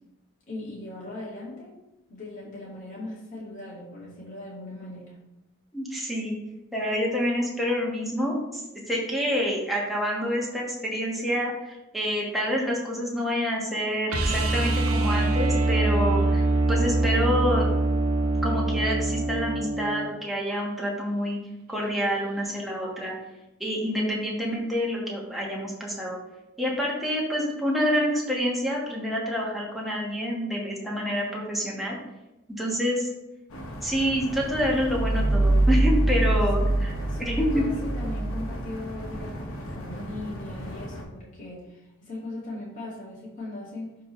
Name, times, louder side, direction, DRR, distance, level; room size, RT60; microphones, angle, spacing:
voice 1, 0.5-1.8 2.1-5.2 36.7-44.0, left 2 dB, 40° left, -6 dB, 2.1 m, -39 dB
voice 2, 5.7-6.4 6.7-8.6 8.9-17.7 18.4-21.4 21.7-23.1 23.6-26.2 26.6-32.0 32.6-33.1 33.8-36.9 37.2-37.6, equal, ahead, -4 dB, 1.4 m, -27 dB
sound 1, 14.1-20.1 22.6-22.7, right 2 dB, 85° right, 0.9 m, -24 dB
sound 2, 33.5-41.0, equal, 80° left, 1.1 m, -37 dB
sound 3, 34.6-39.1, right 1 dB, 35° right, 0.8 m, -24 dB
11.5 x 3.8 x 3.2 m, 0.95 s
head